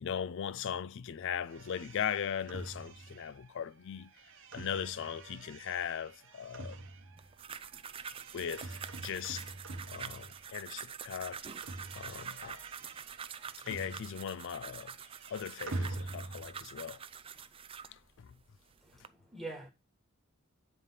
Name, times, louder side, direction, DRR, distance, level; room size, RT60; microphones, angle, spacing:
voice 1, 0.0-4.1 4.5-6.9 8.3-9.4 9.9-11.5 11.9-12.6 13.6-15.0 15.3-17.0 17.9-18.3, left 8 dB, 60° left, 0.4 m, -39 dB
sound 1, 1.5-10.8 11.0-14.5 14.7-16.6, right 2 dB, 55° right, 1.0 m, -46 dB
sound 2, 7.2-18.0 18.6-19.1, right 7 dB, 25° right, 0.4 m, -46 dB
voice 2, 18.8-19.7, right 2 dB, ahead, 1.6 m, -45 dB
9.0 x 3.4 x 5.5 m
head